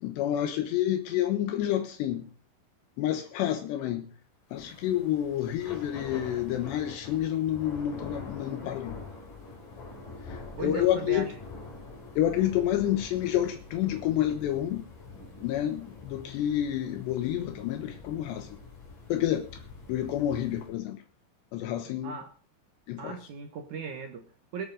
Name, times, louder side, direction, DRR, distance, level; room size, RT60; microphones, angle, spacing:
voice 1, 0.0-2.3 3.0-4.1 4.5-9.0 10.3-11.3 12.2-14.8 15.4-18.6 19.1-19.6 19.9-21.0 21.5-22.1 22.9-23.2, left 12 dB, 80° left, 3.2 m, -29 dB
Thunder / Rain, 4.5-20.8, left 3 dB, 50° left, 5.4 m, -45 dB
voice 2, 10.6-11.3 22.0-22.3 23.0-24.7, right 6 dB, 75° right, 1.8 m, -38 dB
24.0 x 8.2 x 4.0 m
omnidirectional pair, 5.1 m